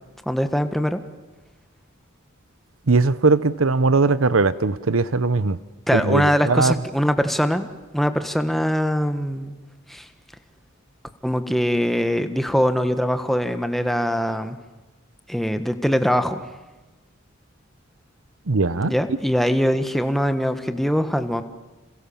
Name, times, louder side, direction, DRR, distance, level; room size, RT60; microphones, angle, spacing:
voice 1, 0.2-1.0 5.9-7.7 7.9-9.6 9.9-10.0 11.2-14.6 15.3-16.4 18.8-21.4, equal, ahead, 8 dB, 1.4 m, -22 dB
voice 2, 2.9-5.6 5.9-6.7 18.5-18.9, right 3 dB, 85° right, 15 dB, 0.9 m, -19 dB
29.5 x 28.0 x 7.2 m, 1.2 s
head